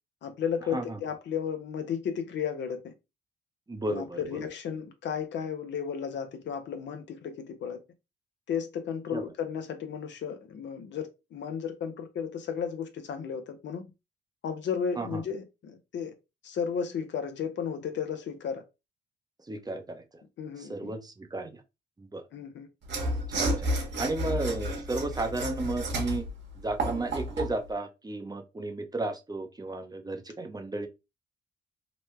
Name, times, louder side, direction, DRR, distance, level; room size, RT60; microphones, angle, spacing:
voice 1, 0.2-2.9 3.9-7.8 8.5-13.8 14.4-16.1 16.4-18.6 20.4-20.9 22.3-22.7, left 7 dB, 65° left, 0.7 m, -34 dB
voice 2, 3.7-4.5 9.1-9.2 15.0-15.2 19.5-20.2 20.6-21.6 22.0-22.3 23.3-23.7 24.0-26.2 26.6-30.9, right 2 dB, 20° right, 0.7 m, -34 dB
Mechanisms / Sawing, 22.8-27.6, right 1 dB, 65° right, 1.1 m, -31 dB
3.0 x 2.2 x 3.1 m
supercardioid pair, 60°, 20 cm